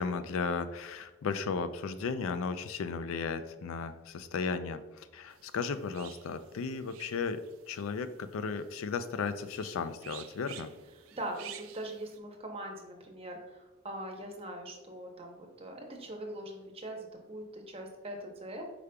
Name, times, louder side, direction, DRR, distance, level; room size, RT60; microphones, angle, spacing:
voice 1, 0.0-10.7, left 5 dB, 75° left, 11 dB, 0.4 m, -35 dB
sound 1, 5.3-12.2, right 10 dB, 75° right, 0.3 m, -52 dB
voice 2, 11.1-18.7, right 1 dB, 30° right, 1 dB, 0.7 m, -42 dB
5.1 x 4.7 x 2.2 m, 1.2 s
head